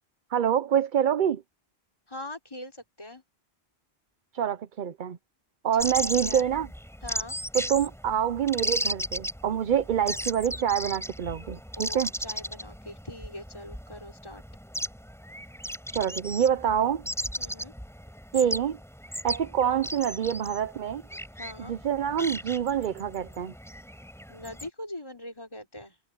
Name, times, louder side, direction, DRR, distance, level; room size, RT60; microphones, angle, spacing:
voice 1, 0.3-1.4 4.3-5.2 5.6-6.7 7.5-12.1 15.9-17.0 18.3-18.8 19.2-21.0 21.7-23.5, right 9 dB, 55° right, 0.7 m, -26 dB
voice 2, 2.1-3.2 5.7-6.5 7.0-7.4 11.8-14.4 17.4-17.7 21.3-21.7 24.3-26.0, left 1 dB, 25° left, 4.2 m, -42 dB
sound 1, 5.8-24.7, equal, ahead, 6.1 m, -36 dB
omnidirectional pair, 1.1 m